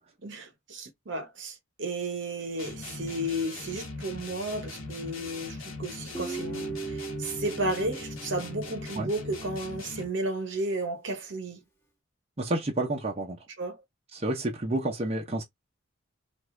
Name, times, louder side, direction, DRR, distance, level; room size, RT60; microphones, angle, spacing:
voice 1, 0.2-11.6 13.6-13.8, right 1 dB, 65° right, 0.9 m, -33 dB
sound 1, 2.6-10.2, left 3 dB, 80° left, 1.1 m, -40 dB
Guitar, 6.1-9.4, right 5 dB, 10° left, 1.1 m, -38 dB
voice 2, 12.4-13.4 14.1-15.4, right 1 dB, 30° right, 0.7 m, -29 dB
2.6 x 2.3 x 3.1 m
head